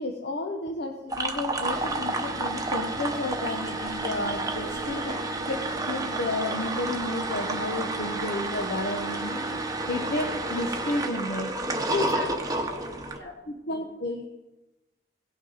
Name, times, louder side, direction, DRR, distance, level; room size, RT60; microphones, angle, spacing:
voice 1, 0.0-5.1 5.9-9.6 9.9-11.5 11.9-12.3 13.5-14.2, left 2 dB, 60° left, 3 dB, 0.9 m, -32 dB
sound 1, 1.1-13.2, right 2 dB, 20° right, 0.9 m, -30 dB
voice 2, 4.5-5.3 11.3-13.4, equal, 80° left, 1 dB, 2.3 m, -44 dB
18.0 x 6.0 x 4.0 m, 1.1 s
head